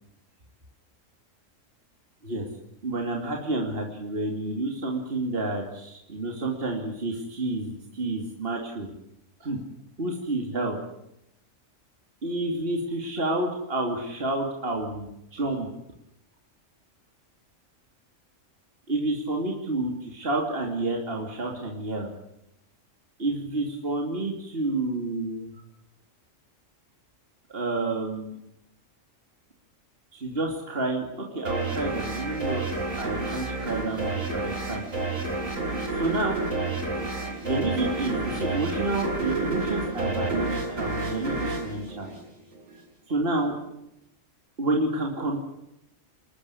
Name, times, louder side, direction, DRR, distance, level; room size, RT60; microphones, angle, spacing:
voice 1, 2.8-8.9 9.4-9.6 10.0-10.8 12.2-15.1 15.3-15.7 18.9-22.1 23.2-25.5 27.5-28.4 30.1-32.7 33.0-34.8 35.9-36.4 37.4-42.1 43.1-43.5 44.6-45.4, right 2 dB, 45° right, 0 dB, 2.9 m, -29 dB
sound 1, 31.5-42.7, right 2 dB, 85° right, 4.1 m, -30 dB
27.5 x 13.5 x 9.7 m, 0.81 s
omnidirectional pair, 1.3 m